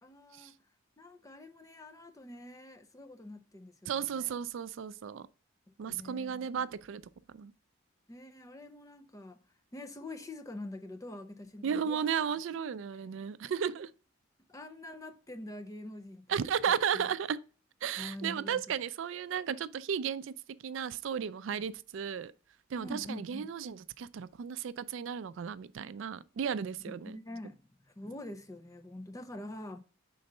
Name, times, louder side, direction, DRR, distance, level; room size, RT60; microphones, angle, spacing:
voice 1, 0.0-0.5 1.0-4.3 5.9-6.6 8.1-9.4 9.7-12.1 14.5-16.8 18.0-18.6 22.8-23.5 27.0-29.8, left 1 dB, 15° left, 0.5 m, -45 dB
voice 2, 3.9-5.3 5.8-7.0 7.3-7.5 11.6-13.9 16.3-17.4 17.8-20.3 20.6-22.3 22.7-27.2, right 7 dB, 70° right, 0.3 m, -34 dB
5.3 x 3.9 x 5.3 m
head